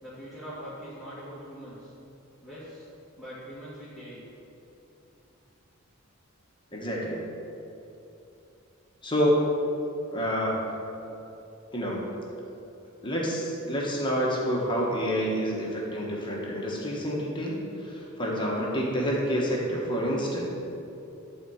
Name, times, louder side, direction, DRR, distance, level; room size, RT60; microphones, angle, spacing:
voice 1, 0.0-1.9 2.4-2.9 3.2-4.3, equal, ahead, -12 dB, 1.9 m, -42 dB
voice 2, 6.7-7.2 9.0-9.5 10.1-10.6 11.7-12.0 13.0-20.5, equal, 20° left, -3 dB, 1.5 m, -28 dB
12.0 x 4.6 x 7.2 m, 2.9 s
head